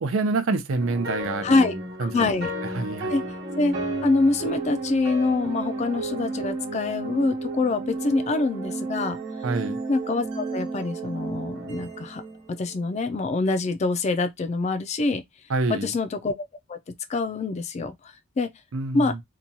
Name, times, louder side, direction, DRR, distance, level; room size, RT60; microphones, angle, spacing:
voice 1, 0.0-2.3 2.7-3.1 9.4-9.8 15.5-15.9 18.7-19.2, right 3 dB, 85° right, 0.5 m, -27 dB
sound 1, 0.7-13.0, right 2 dB, 60° right, 1.0 m, -33 dB
voice 2, 1.4-1.7 2.0-2.5 3.1-3.2 3.6-3.7 4.0-9.2 9.9-12.2 12.6-15.2 15.7-16.3 16.7-16.8 17.1-18.5 18.9-19.1, left 3 dB, 35° left, 0.3 m, -25 dB
2.9 x 2.3 x 2.6 m
head